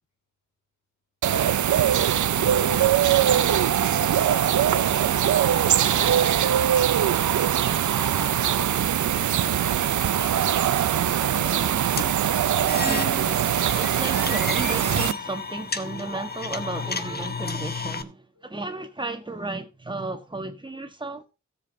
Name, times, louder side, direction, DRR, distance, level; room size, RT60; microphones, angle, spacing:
sound 1, 1.2-15.1, right 10 dB, 75° right, 0.5 m, -22 dB
voice 1, 2.3-11.8 18.4-18.5 19.3-19.6 19.9-20.2 21.1-21.2, left 5 dB, 75° left, 2.1 m, -44 dB
sound 2, 3.9-15.9, left 3 dB, 55° left, 5.3 m, -53 dB
voice 2, 11.4-11.8 12.5-21.2, right 2 dB, 15° right, 1.3 m, -34 dB
sound 3, 12.0-18.0, left 5 dB, 35° left, 0.8 m, -32 dB
17.0 x 7.4 x 2.7 m
wide cardioid pair, 175°, 30 cm